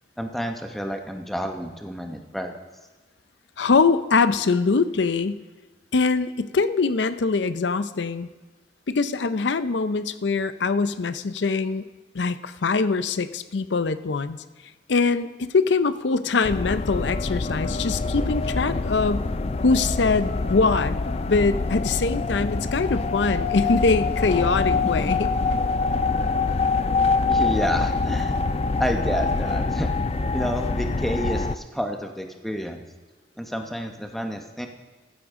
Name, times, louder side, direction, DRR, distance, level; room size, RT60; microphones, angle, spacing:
voice 1, 0.2-2.5 27.3-28.4 28.8-29.9 30.3-32.8 33.4-34.7, equal, ahead, 4 dB, 0.9 m, -29 dB
voice 2, 3.6-5.4 5.9-8.3 8.9-11.9 12.1-14.4 14.9-19.3 19.6-21.0 21.3-25.3, left 4 dB, 80° left, 13 dB, 0.6 m, -23 dB
sound 1, 16.4-31.6, left 3 dB, 35° left, 0.4 m, -25 dB
15.0 x 13.0 x 3.7 m, 1.2 s
head